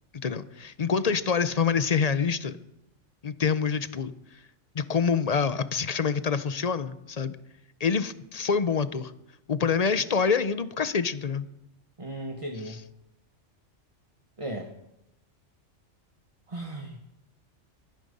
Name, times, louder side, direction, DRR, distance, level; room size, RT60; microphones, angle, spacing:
voice 1, 0.2-2.6 3.2-4.1 4.7-7.4 7.8-9.1 9.5-11.5, left 6 dB, 40° left, 14 dB, 0.7 m, -26 dB
voice 2, 12.0-12.8 14.4-14.7 16.5-17.2, right 1 dB, 25° right, 3 dB, 1.4 m, -36 dB
22.5 x 10.0 x 5.4 m, 0.87 s
omnidirectional pair, 1.3 m